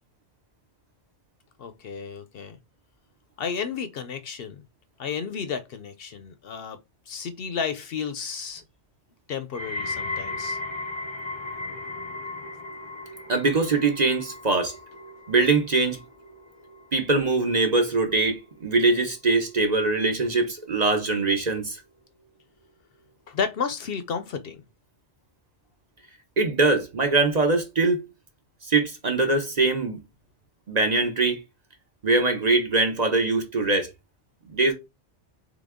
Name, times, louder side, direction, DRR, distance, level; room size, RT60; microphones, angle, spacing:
voice 1, 1.6-2.6 3.4-4.6 5.0-6.8 7.1-8.6 9.3-10.6 23.3-24.6, left 6 dB, 65° left, 0.7 m, -32 dB
sound 1, 9.5-20.7 21.0-21.5 22.2-22.3, left 2 dB, 35° left, 0.5 m, -37 dB
voice 2, 13.3-14.7 15.3-16.0 16.9-21.8 26.4-28.0 28.6-30.0 30.7-31.4 32.0-33.9 34.5-34.7, right 3 dB, 40° right, 0.8 m, -22 dB
3.9 x 3.3 x 3.6 m
omnidirectional pair, 1.2 m